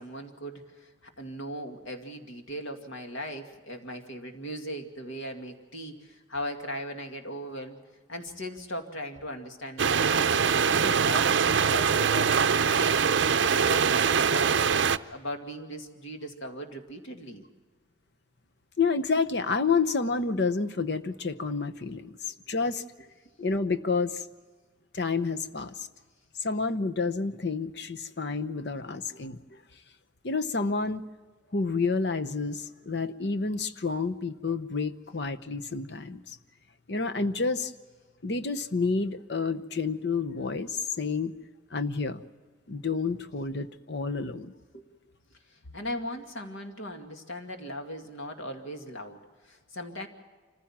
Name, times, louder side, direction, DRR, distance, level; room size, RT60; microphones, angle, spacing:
voice 1, 0.0-7.8 8.1-10.3 10.7-13.0 13.4-14.8 15.1-17.5 44.7-44.9 45.5-50.1, equal, 85° left, 4 dB, 2.3 m, -38 dB
sound 1, 9.8-15.0, right 6 dB, 70° right, 0.6 m, -23 dB
voice 2, 18.8-22.8 23.4-24.2 24.9-25.9 26.4-29.6 30.2-31.0 31.5-36.4 36.9-37.7 38.2-41.3 41.7-42.2 42.7-44.5, left 4 dB, 60° left, 11 dB, 0.9 m, -29 dB
26.0 x 15.0 x 7.3 m, 1.5 s
head